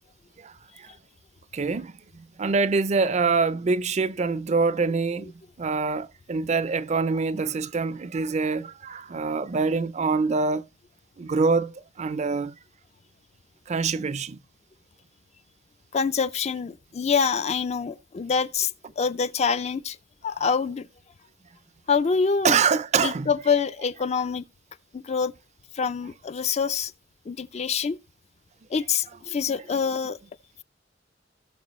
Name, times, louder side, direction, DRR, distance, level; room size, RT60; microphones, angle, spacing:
voice 1, 0.4-0.9 1.5-5.3 5.6-10.7 11.2-12.5 13.7-14.4 22.4-23.3, right 4 dB, 40° right, 0.4 m, -25 dB
voice 2, 15.9-20.0 20.2-20.9 21.9-22.6 23.0-24.4 24.9-25.3 25.7-26.9 27.3-28.0 28.7-30.2, left 5 dB, 35° left, 0.4 m, -26 dB
18.0 x 6.0 x 3.1 m
head